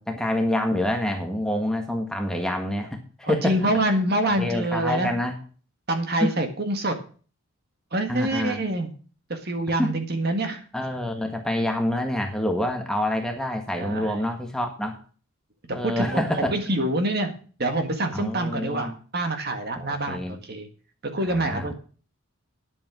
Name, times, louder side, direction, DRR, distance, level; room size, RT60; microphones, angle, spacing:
voice 1, 0.1-3.7 4.2-5.4 6.2-6.3 8.1-8.6 9.8-9.9 10.7-15.0 15.7-16.5 18.1-18.9 19.7-20.4 21.2-21.7, left 1 dB, 5° left, 3 dB, 1.6 m, -27 dB
voice 2, 3.2-5.1 5.9-7.0 7.9-8.9 9.3-10.6 13.8-14.2 15.8-16.2 16.5-20.7 21.1-21.7, right 1 dB, 45° right, 6 dB, 1.8 m, -26 dB
9.9 x 8.5 x 6.2 m, 0.39 s
head